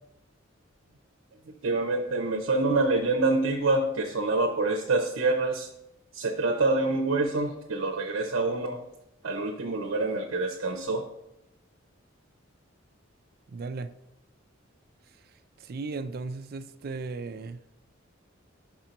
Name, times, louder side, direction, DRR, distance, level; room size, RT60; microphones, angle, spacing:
voice 1, 1.6-5.7 6.1-8.8 9.2-11.0, right 2 dB, 80° right, 0.7 m, -26 dB
voice 2, 13.5-13.9 15.7-17.6, right 3 dB, 50° right, 0.4 m, -35 dB
5.9 x 4.4 x 5.2 m
head